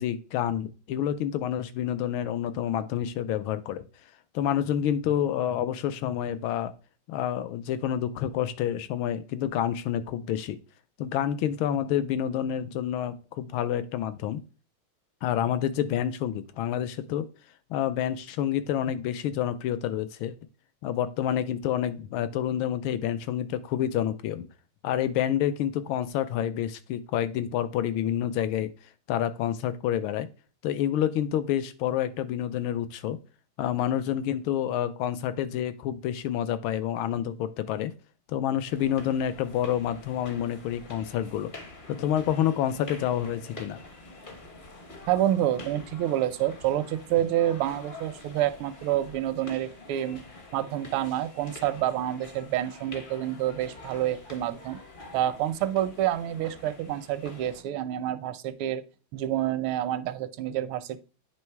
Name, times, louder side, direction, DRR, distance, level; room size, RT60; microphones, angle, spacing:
voice 1, 0.0-3.8 4.3-6.7 7.1-10.6 11.0-14.4 15.2-17.3 17.7-20.3 20.8-24.5 24.8-28.7 29.1-30.3 30.6-33.2 33.6-37.9 38.3-41.5 41.9-43.8, left 10 dB, 80° left, 12 dB, 1.4 m, -28 dB
sound 1, 38.7-57.6, left 2 dB, 40° left, 0.7 m, -46 dB
voice 2, 45.1-50.2 50.5-54.8 55.1-58.8 59.1-61.0, right 12 dB, 85° right, 13 dB, 1.4 m, -28 dB
9.4 x 3.1 x 4.5 m, 0.34 s
omnidirectional pair, 2.3 m